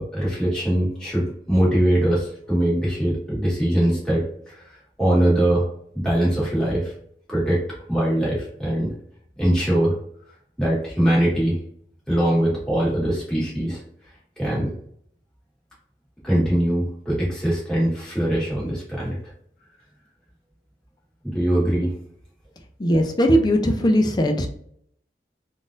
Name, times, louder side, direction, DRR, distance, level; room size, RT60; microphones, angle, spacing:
voice 1, 0.0-5.7 5.9-6.9 7.3-7.6 7.9-8.9 9.4-10.0 10.6-11.6 12.1-13.8 14.4-14.7 16.2-19.2 21.2-21.9, right 1 dB, 5° left, -8 dB, 1.5 m, -22 dB
voice 2, 22.8-24.5, equal, 25° left, 5 dB, 0.4 m, -19 dB
3.6 x 2.6 x 2.4 m, 0.65 s
head